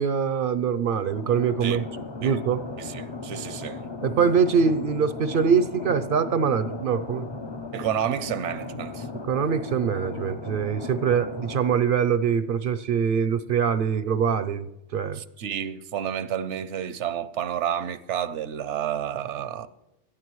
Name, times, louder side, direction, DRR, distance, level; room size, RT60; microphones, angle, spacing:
voice 1, 0.0-1.8 2.2-2.6 4.0-7.3 9.3-15.2, right 6 dB, 60° right, 0.6 m, -23 dB
sound 1, 1.1-11.6, left 3 dB, 30° left, 0.5 m, -37 dB
voice 2, 2.8-3.8 7.7-9.1 15.1-19.7, right 9 dB, 80° right, 0.9 m, -30 dB
17.5 x 12.5 x 3.1 m
omnidirectional pair, 1.2 m